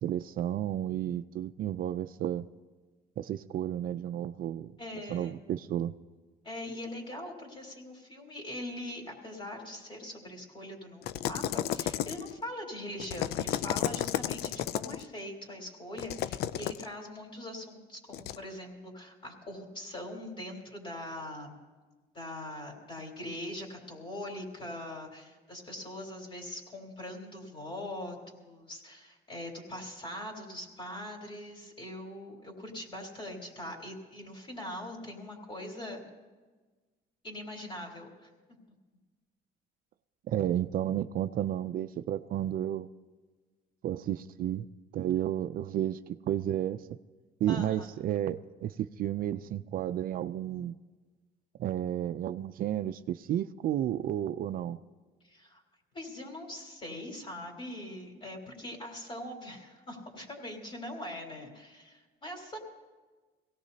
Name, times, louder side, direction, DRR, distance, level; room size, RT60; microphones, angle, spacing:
voice 1, 0.0-2.5 3.2-4.7 5.1-5.9 40.3-42.9 43.8-44.6 44.9-46.8 47.4-50.8 51.6-54.8, right 11 dB, 60° right, 12 dB, 0.5 m, -32 dB
voice 2, 4.8-5.3 6.4-21.6 22.1-36.0 37.2-38.3 47.5-47.9 55.2-55.6 55.9-62.6, left 1 dB, 30° left, 1 dB, 3.9 m, -42 dB
sound 1, 11.0-12.4 13.0-15.0 16.0-16.9 18.1-18.4, left 11 dB, 70° left, 0.5 m, -33 dB
23.0 x 17.5 x 2.8 m, 1.3 s
cardioid pair, 110°, 17 cm